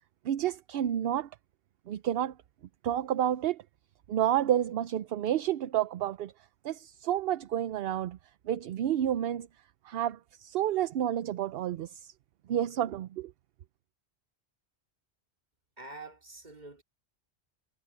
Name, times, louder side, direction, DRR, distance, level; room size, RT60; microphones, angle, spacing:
voice 1, 0.2-1.3 1.9-2.4 2.8-3.6 4.1-6.3 6.6-8.2 8.4-9.5 9.8-12.1 12.5-13.3, right 11 dB, 70° right, 0.7 m, -30 dB
voice 2, 15.8-16.8, right 2 dB, 40° right, 2.5 m, -46 dB
omnidirectional pair, 1.1 m